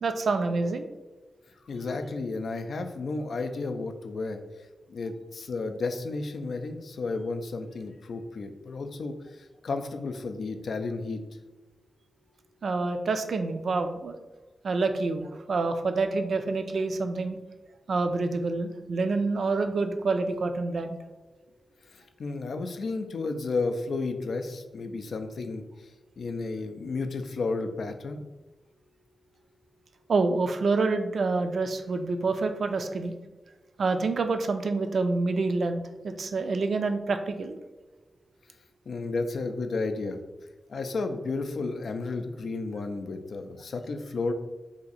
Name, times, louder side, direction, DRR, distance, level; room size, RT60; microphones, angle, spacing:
voice 1, 0.0-0.9 12.6-14.1 14.6-17.4 17.9-21.0 30.1-33.1 33.8-37.6, right 3 dB, 70° right, 7 dB, 0.3 m, -27 dB
voice 2, 1.7-4.4 4.9-11.2 21.9-25.6 26.2-28.2 38.9-40.2 40.7-44.3, left 3 dB, 75° left, 7 dB, 0.4 m, -32 dB
2.8 x 2.5 x 4.0 m, 1.1 s
wide cardioid pair, 120°, 0 cm